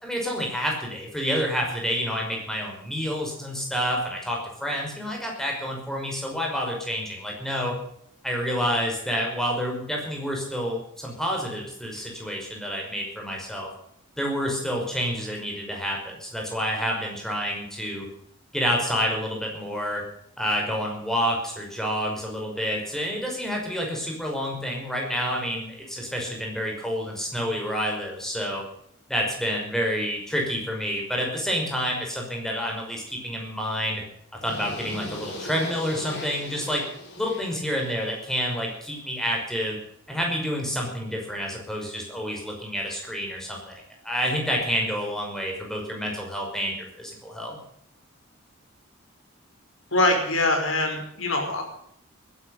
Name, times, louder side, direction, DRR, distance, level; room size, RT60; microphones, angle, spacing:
voice 1, 0.0-7.8 8.2-13.7 14.2-18.1 18.5-20.0 20.4-28.6 29.1-34.0 34.4-36.8 37.2-39.8 40.1-47.6, equal, ahead, 0 dB, 5.6 m, -28 dB
sound 1, 34.4-38.5, left 1 dB, 50° left, 4.7 m, -39 dB
voice 2, 49.9-51.6, left 2 dB, 75° left, 3 dB, 5.5 m, -23 dB
19.5 x 11.5 x 5.7 m, 0.69 s
head